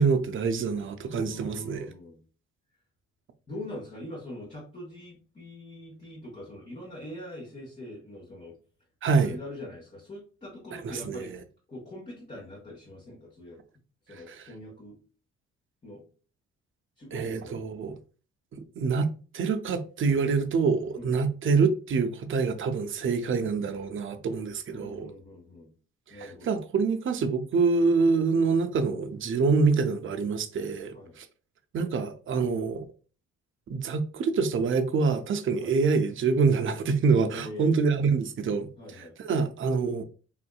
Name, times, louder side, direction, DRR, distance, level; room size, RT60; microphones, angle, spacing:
voice 1, 0.0-1.9 9.0-9.4 10.8-11.2 14.1-14.5 17.1-17.9 18.5-19.1 19.3-25.1 26.1-31.3 31.7-32.8 33.7-38.7 39.2-40.0, right 4 dB, 45° right, 0.5 m, -26 dB
voice 2, 1.3-2.2 3.5-8.6 9.2-11.3 11.7-13.6 14.1-15.0 15.8-16.0 17.0-17.6 20.9-21.2 24.7-25.7 26.1-26.6 30.9-31.2 35.6-35.8 37.3-37.8 38.8-39.1, left 1 dB, 20° left, 1.1 m, -43 dB
3.6 x 2.6 x 2.3 m
cardioid pair, 90°, 30 cm